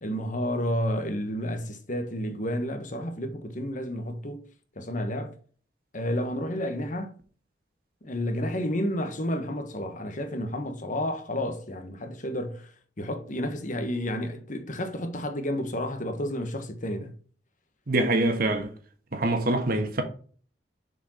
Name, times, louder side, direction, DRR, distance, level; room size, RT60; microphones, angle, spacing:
voice 1, 0.0-4.4 4.8-5.4 5.9-7.2 8.0-17.1, equal, 50° left, 1.3 m, -31 dB
voice 2, 17.9-18.7 19.1-20.0, right 2 dB, 55° right, 1.5 m, -24 dB
6.8 x 4.7 x 4.4 m
head